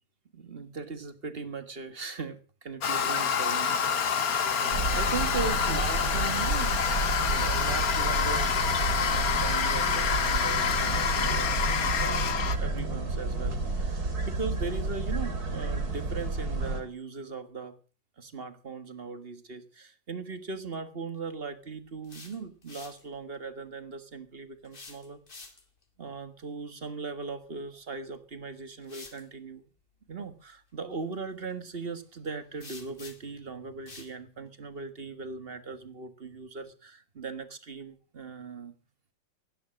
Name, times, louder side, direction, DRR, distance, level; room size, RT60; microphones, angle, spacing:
voice 1, 0.3-6.8 7.3-8.5 9.0-12.3 12.6-17.8 18.2-25.2 26.0-29.6 30.1-38.7, right 4 dB, 35° right, 10 dB, 1.5 m, -39 dB
Toilet flush, 2.8-12.6, left 7 dB, 55° left, 1.6 m, -27 dB
sound 1, 4.7-16.8, right 2 dB, 50° right, 3.5 m, -31 dB
sound 2, 21.9-23.0 24.6-25.8 27.9-28.0 28.8-29.2 32.6-33.4 33.9-34.1, left 3 dB, 30° left, 2.0 m, -48 dB
17.0 x 10.0 x 6.4 m, 0.39 s
omnidirectional pair, 2.1 m